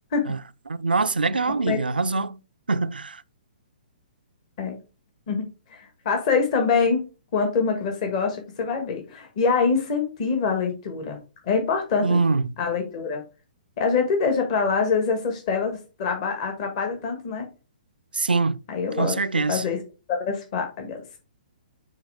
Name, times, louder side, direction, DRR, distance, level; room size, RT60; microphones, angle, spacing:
voice 1, 0.7-2.4 2.7-3.2 12.0-12.5 18.1-18.6 19.0-19.6, right 3 dB, 85° right, 0.4 m, -24 dB
voice 2, 5.7-7.0 7.3-11.2 11.4-12.2 12.6-13.2 13.8-17.5 18.7-19.2 19.5-19.8 20.1-21.0, left 5 dB, 45° left, 1.5 m, -25 dB
9.1 x 3.4 x 3.5 m
figure-of-eight pair, 125°, 5 cm